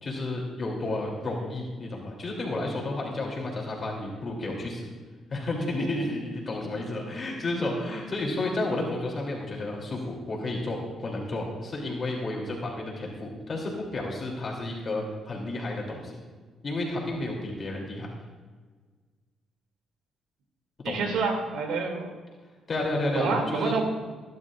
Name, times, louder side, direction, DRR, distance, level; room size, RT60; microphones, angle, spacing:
voice 1, 0.0-4.9 5.3-16.2 16.6-18.1 20.8-21.0 22.7-23.7, left 2 dB, 40° left, -1 dB, 3.0 m, -31 dB
voice 2, 20.8-22.1 23.1-23.8, right 4 dB, 90° right, 2 dB, 2.6 m, -27 dB
23.0 x 11.0 x 2.5 m, 1.4 s
cardioid pair, 90°, 0 cm